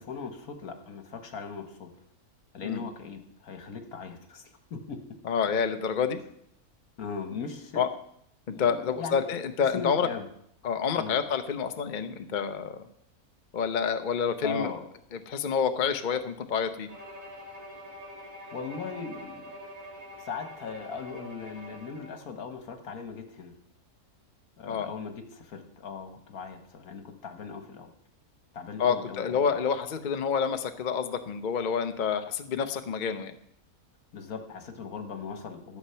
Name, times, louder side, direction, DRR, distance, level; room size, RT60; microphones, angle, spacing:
voice 1, 0.0-1.9 2.5-5.0 6.1-6.2 7.0-7.8 8.5-9.2 9.7-10.3 11.0-11.2 14.4-14.8 18.5-19.6 20.2-23.5 24.6-27.9 28.5-29.5 34.1-35.8, left 5 dB, 70° left, 7 dB, 1.7 m, -39 dB
voice 2, 5.2-6.2 7.8-7.9 8.5-10.1 10.6-12.8 13.5-14.7 15.3-16.9 24.7-24.9 28.8-33.3, left 6 dB, 45° left, 8 dB, 0.7 m, -28 dB
Bowed string instrument, 16.9-22.2, equal, 75° right, 2.5 m, -45 dB
13.0 x 7.2 x 5.7 m, 0.72 s
omnidirectional pair, 1.6 m